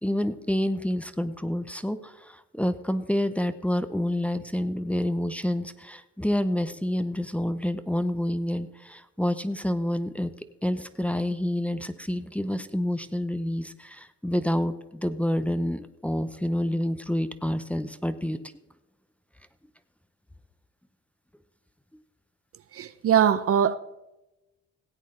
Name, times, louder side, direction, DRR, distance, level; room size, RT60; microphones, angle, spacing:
voice 1, 0.0-10.3 10.6-18.4, left 1 dB, 5° left, 0.7 m, -28 dB
voice 2, 22.7-23.8, right 8 dB, 50° right, 0.6 m, -21 dB
16.5 x 8.3 x 3.8 m
cardioid pair, 90°, 30 cm